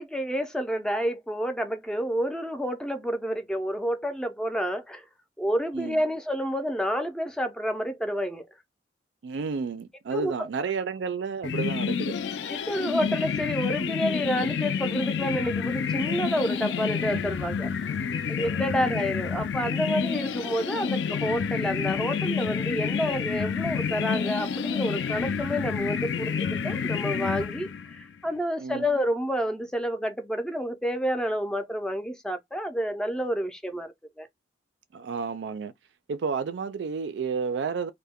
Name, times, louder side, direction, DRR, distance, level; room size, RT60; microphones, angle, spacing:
voice 1, 0.0-5.0 5.4-8.5 10.1-10.5 12.5-34.3, equal, 5° left, 0.4 m, -29 dB
voice 2, 9.2-12.2 18.7-19.1 28.6-28.8 34.9-35.7 36.1-37.9, right 5 dB, 90° right, 0.4 m, -31 dB
sound 1, 11.4-28.0, left 6 dB, 75° left, 0.3 m, -29 dB
2.2 x 2.1 x 3.4 m
head